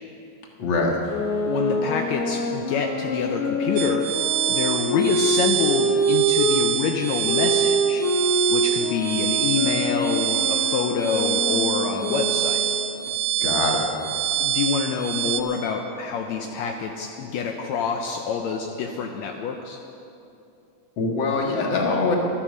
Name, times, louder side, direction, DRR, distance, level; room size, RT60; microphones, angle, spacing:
voice 1, 0.6-1.0 13.4-13.9 21.0-22.2, left 3 dB, 45° left, 0 dB, 1.9 m, -23 dB
sound 1, 1.1-6.6 7.2-12.8, right 1 dB, 60° left, 2.7 m, -25 dB
voice 2, 1.5-4.0 4.5-8.0 8.5-12.6 14.4-19.8, left 6 dB, 80° left, 3 dB, 1.6 m, -27 dB
sound 2, 3.8-15.4, right 11 dB, 75° right, 2.2 m, -25 dB
13.5 x 12.5 x 6.5 m, 2.7 s
omnidirectional pair, 4.0 m